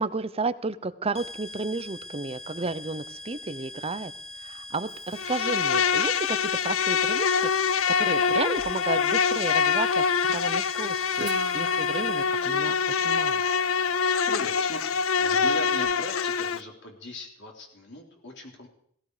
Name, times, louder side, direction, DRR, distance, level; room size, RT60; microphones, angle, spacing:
voice 1, 0.0-4.1 4.4-13.4, right 3 dB, 30° right, 14 dB, 0.8 m, -33 dB
sound 1, 1.1-12.6, left 1 dB, 35° left, 1.4 m, -42 dB
Insect, 5.2-16.6, left 6 dB, 75° left, 0.6 m, -25 dB
Guitar, 11.1-14.9, right 4 dB, 60° right, 0.9 m, -42 dB
voice 2, 14.3-18.7, left 1 dB, 60° left, 0 dB, 4.1 m, -39 dB
17.5 x 16.5 x 5.0 m, 0.66 s
head